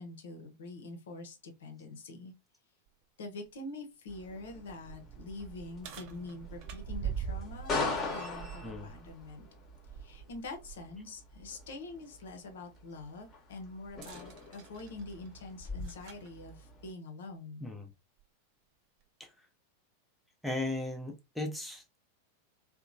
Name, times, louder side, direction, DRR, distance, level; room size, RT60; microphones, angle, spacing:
voice 1, 0.0-2.3 3.2-9.5 10.0-17.7, left 2 dB, 60° left, 0.6 m, -45 dB
sound 1, 2.9-3.0 3.5-3.6 4.1-10.9 11.3-11.4 13.9-16.3 17.3-17.4 18.2-18.3, right 8 dB, 40° right, 0.4 m, -44 dB
sound 2, 4.1-16.9, left 3 dB, 25° left, 0.9 m, -42 dB
voice 2, 20.4-22.0, left 2 dB, ahead, 0.6 m, -36 dB
2.9 x 2.1 x 2.5 m
figure-of-eight pair, 90°, 0 cm